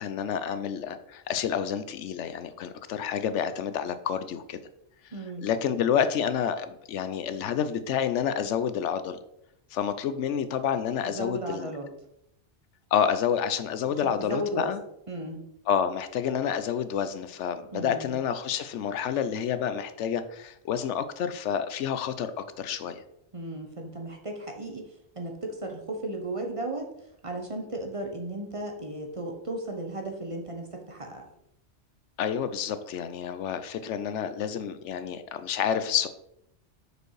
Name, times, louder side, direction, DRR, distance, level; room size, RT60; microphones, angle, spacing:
voice 1, 0.0-4.6 5.0-5.1 5.4-9.2 9.7-11.7 12.9-14.8 15.7-23.0 32.2-36.1, left 8 dB, 80° left, 11 dB, 0.9 m, -29 dB
voice 2, 5.1-5.5 11.0-11.9 14.0-14.7 15.1-15.4 17.7-18.1 23.3-26.9 27.2-31.2, right 1 dB, 30° right, 3 dB, 0.9 m, -35 dB
6.4 x 5.2 x 4.7 m, 0.79 s
omnidirectional pair, 1.2 m